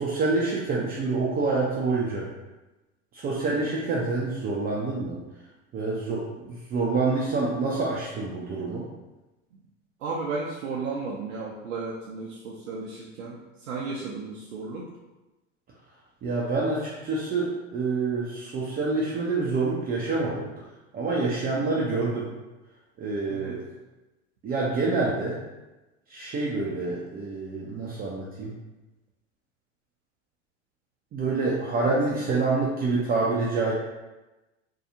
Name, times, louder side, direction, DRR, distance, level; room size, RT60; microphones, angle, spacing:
voice 1, 0.0-2.3 3.1-5.2 5.7-8.8 16.2-20.5 20.9-22.3 23.0-23.6 24.4-25.4 26.1-28.6 31.1-33.7, right 3 dB, 25° right, -4 dB, 0.4 m, -27 dB
voice 2, 10.0-14.9 21.6-21.8 23.3-23.6 31.9-32.3, right 4 dB, 75° right, -4 dB, 0.5 m, -34 dB
2.7 x 2.3 x 2.6 m, 1.1 s
hypercardioid pair, 80°, 38 cm